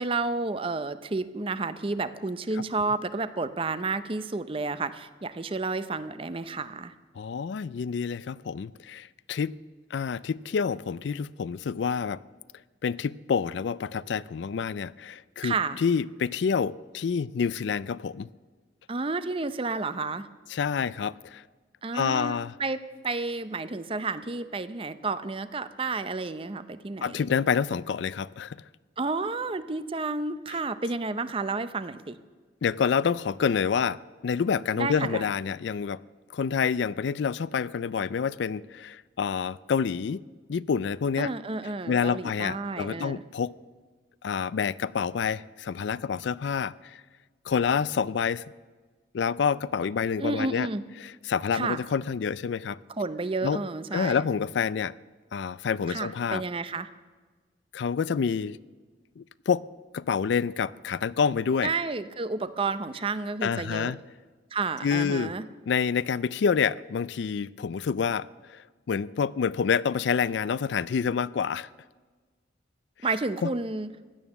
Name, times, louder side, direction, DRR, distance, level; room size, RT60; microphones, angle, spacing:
voice 1, 0.0-6.9 15.4-15.8 18.9-20.3 21.8-27.2 29.0-32.2 34.8-35.3 41.2-43.2 50.2-50.8 51.5-51.8 53.0-54.3 55.9-56.9 61.6-63.9 64.5-65.4 73.0-73.9, right 3 dB, 30° right, 0.6 m, -31 dB
voice 2, 7.2-9.6 9.9-12.2 12.8-18.3 20.5-21.4 21.9-22.5 27.0-28.6 32.6-34.0 34.2-36.0 36.3-40.2 40.5-41.3 41.9-43.5 44.2-47.0 47.5-48.4 49.1-50.7 51.3-52.8 53.4-53.6 53.9-54.9 55.3-56.4 57.7-58.6 59.2-59.6 59.9-61.7 63.4-64.0 64.8-65.3 65.7-68.6 68.9-71.7 73.4-73.5, left 6 dB, 70° left, 0.4 m, -28 dB
16.0 x 11.0 x 7.2 m
head